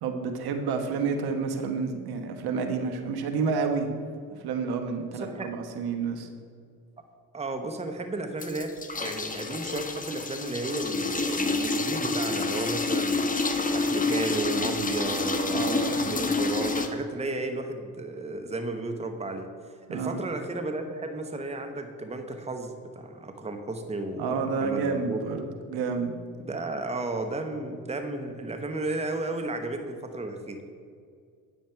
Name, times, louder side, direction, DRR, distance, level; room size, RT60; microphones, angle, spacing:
voice 1, 0.0-3.9 4.3-6.3 15.5-16.1 19.9-20.2 24.2-26.1, right 5 dB, 75° right, 6 dB, 1.2 m, -30 dB
voice 2, 5.1-5.5 7.3-13.2 13.7-25.5 26.4-30.6, right 2 dB, 15° right, 6 dB, 1.0 m, -33 dB
sound 1, 8.4-16.9, left 3 dB, 20° left, 1.0 m, -28 dB
9.3 x 7.2 x 4.5 m, 2.2 s
supercardioid pair, 65°, 38 cm